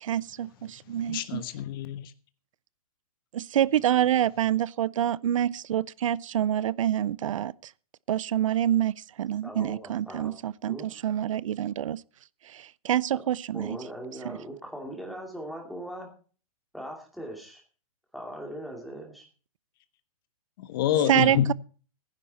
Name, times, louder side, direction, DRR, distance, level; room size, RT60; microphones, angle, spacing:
voice 1, 0.0-1.4 3.3-7.7 8.1-12.0 12.5-13.8 14.2-14.4 21.1-21.5, right 11 dB, 60° right, 0.5 m, -27 dB
voice 2, 1.1-2.1 20.7-21.5, left 10 dB, 40° left, 1.3 m, -27 dB
voice 3, 9.4-10.4 10.7-10.9 13.1-13.2 13.5-16.1 16.7-17.6 18.1-19.3, equal, ahead, 2.5 m, -40 dB
16.0 x 10.5 x 4.1 m
hypercardioid pair, 160°, 18 cm